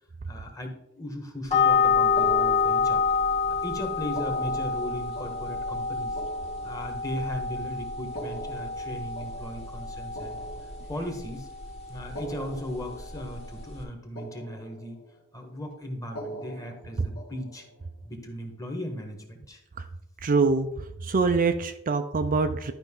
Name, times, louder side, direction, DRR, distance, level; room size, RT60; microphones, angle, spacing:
voice 1, 0.3-3.3 3.6-6.2 6.6-10.5 10.9-11.5 11.9-15.0 15.3-17.6 18.0-19.6, left 1 dB, 15° left, 4 dB, 1.4 m, -37 dB
sound 1, 1.5-13.8, left 5 dB, 30° left, 1.5 m, -28 dB
sound 2, 2.2-3.4 4.0-7.3 8.0-11.3 12.0-13.9 14.1-15.2 16.0-17.8, right 1 dB, 70° left, 2.0 m, -43 dB
voice 2, 20.2-22.7, right 4 dB, 40° right, 8 dB, 0.5 m, -25 dB
11.5 x 5.3 x 3.7 m, 0.83 s
head